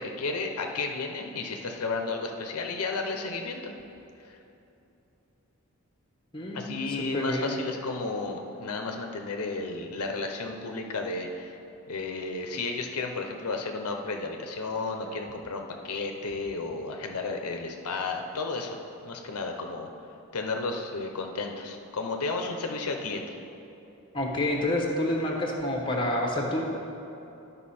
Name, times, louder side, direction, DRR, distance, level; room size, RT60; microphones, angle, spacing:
voice 1, 0.0-3.7 4.2-4.4 6.5-11.5 11.9-18.8 19.0-19.9 20.3-23.4, left 3 dB, 85° left, 3 dB, 0.7 m, -33 dB
voice 2, 6.3-6.7 7.1-7.5 24.1-26.6, left 1 dB, 20° left, 0 dB, 0.9 m, -28 dB
11.0 x 5.5 x 4.3 m, 2.9 s
head